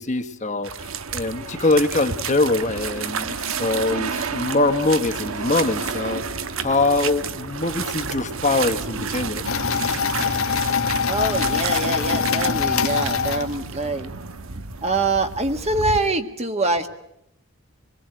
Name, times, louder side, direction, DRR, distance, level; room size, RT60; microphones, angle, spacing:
voice 1, 0.0-6.2 6.6-9.4, left 2 dB, 35° left, 7 dB, 1.4 m, -23 dB
sound 1, 0.6-16.0, right 7 dB, 65° right, 1.1 m, -33 dB
sound 2, 0.8-16.1, right 4 dB, 85° right, 1.3 m, -35 dB
sound 3, 9.4-13.9, left 6 dB, 75° left, 1.6 m, -23 dB
voice 2, 11.1-14.1 14.8-16.9, right 2 dB, 30° right, 6 dB, 1.8 m, -24 dB
26.5 x 21.0 x 9.0 m, 0.79 s
head